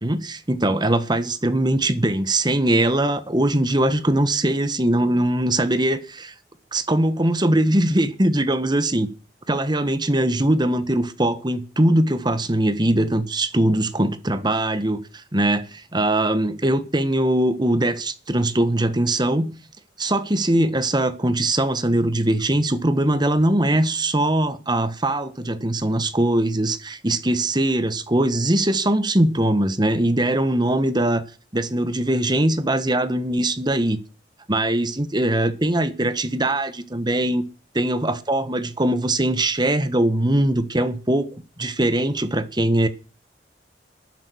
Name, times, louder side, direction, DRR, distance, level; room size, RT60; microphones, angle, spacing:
voice 1, 0.0-6.3 6.7-9.1 9.5-19.5 20.0-31.2 31.5-34.0 34.5-37.4 37.7-42.9, right 1 dB, 25° right, 1.3 m, -21 dB
19.5 x 11.0 x 6.2 m
head